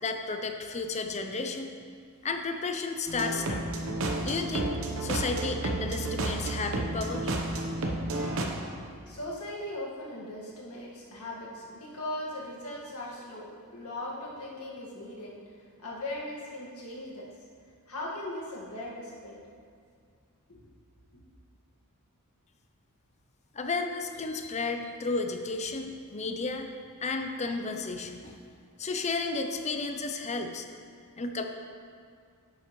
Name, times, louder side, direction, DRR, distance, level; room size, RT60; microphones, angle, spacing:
voice 1, 0.0-1.7 2.2-3.6 4.2-4.7 5.0-7.3 23.5-26.7 27.0-28.4 28.8-30.7 31.2-31.4, left 3 dB, 30° left, 5 dB, 0.6 m, -32 dB
sound 1, 3.1-8.5, right 2 dB, 65° right, 1.0 m, -31 dB
voice 2, 8.7-17.3 17.9-19.4 20.5-20.6, left 1 dB, 75° left, -4 dB, 1.9 m, -39 dB
11.0 x 7.7 x 3.2 m, 2.2 s
head